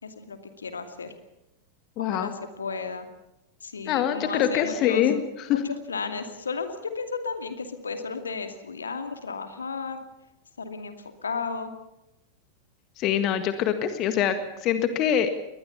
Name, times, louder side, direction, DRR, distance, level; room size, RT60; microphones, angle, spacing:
voice 1, 0.0-1.2 2.0-3.1 3.6-5.0 5.5-10.0 10.6-11.0 11.2-11.7, left 5 dB, 75° left, 8 dB, 2.4 m, -34 dB
voice 2, 2.0-2.3 3.9-5.2 5.5-5.6 13.0-14.4 14.6-15.3, left 10 dB, 35° left, 10 dB, 1.8 m, -24 dB
22.0 x 20.0 x 7.1 m, 0.92 s
figure-of-eight pair, 90°, 0 cm